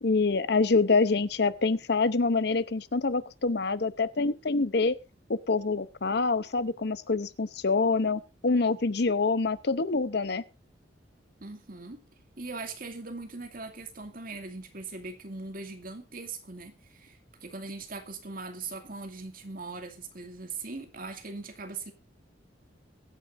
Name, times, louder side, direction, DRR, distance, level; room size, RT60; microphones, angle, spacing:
voice 1, 0.0-4.9 5.3-10.4, left 4 dB, 65° left, 15 dB, 0.8 m, -26 dB
voice 2, 11.4-12.0 12.4-21.9, right 3 dB, 55° right, 6 dB, 2.3 m, -40 dB
22.5 x 9.2 x 2.6 m, 0.26 s
head